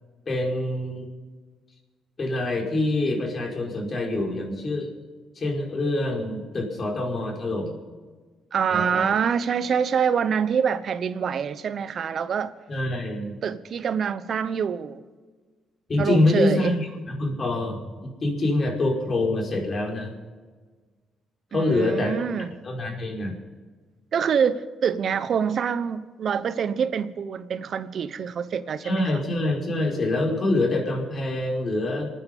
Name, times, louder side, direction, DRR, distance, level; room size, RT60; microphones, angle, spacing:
voice 1, 0.3-1.1 2.2-4.9 5.4-7.8 8.7-9.1 12.7-13.4 15.9-20.1 21.5-22.1 22.6-23.4 28.8-32.1, left 2 dB, 40° left, 5.3 m, -25 dB
voice 2, 8.5-12.5 13.4-15.0 16.0-16.7 21.5-22.5 24.1-29.1, right 7 dB, 55° right, 1.0 m, -25 dB
27.0 x 9.7 x 5.5 m
cardioid pair, 90°, 0 cm